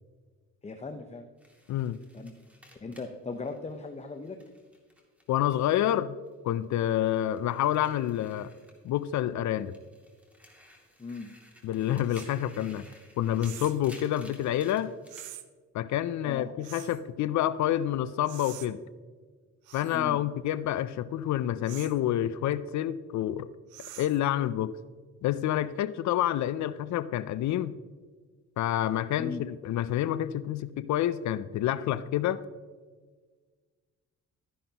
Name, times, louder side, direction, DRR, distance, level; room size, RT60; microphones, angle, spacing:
voice 1, 0.6-1.2 2.1-2.3 2.8-4.4 11.0-11.3 16.2-16.5 19.9-20.2 29.2-29.4, left 4 dB, 20° left, 6 dB, 0.8 m, -38 dB
sound 1, 1.4-6.0 6.3-9.2 9.6-15.3, left 1 dB, 5° right, 2.4 m, -56 dB
voice 2, 5.3-6.2 6.4-8.5 8.8-9.7 11.6-12.9 13.2-14.9 15.7-18.8 19.7-23.5 24.0-24.8 25.2-27.7 28.6-32.4, left 12 dB, 70° left, 15 dB, 0.5 m, -28 dB
sound 2, 12.1-12.3 13.4-13.9 15.1-15.5 16.6-17.0 18.2-18.7 19.6-20.0 21.6-22.0 23.7-24.3, right 13 dB, 90° right, 0.7 m, -45 dB
12.5 x 11.0 x 2.9 m, 1.5 s
cardioid pair, 90°, 30 cm